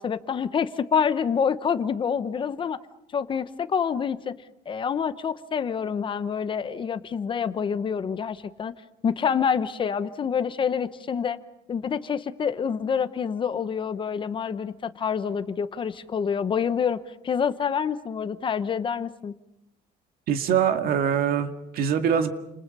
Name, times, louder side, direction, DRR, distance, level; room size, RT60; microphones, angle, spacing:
voice 1, 0.0-2.8 3.1-4.4 4.7-8.7 9.0-11.4 11.7-19.3, left 7 dB, 30° left, 12 dB, 0.9 m, -27 dB
voice 2, 20.3-22.3, right 8 dB, 60° right, 7 dB, 2.1 m, -23 dB
30.0 x 28.0 x 5.5 m, 0.86 s
cardioid pair, 165°, 17 cm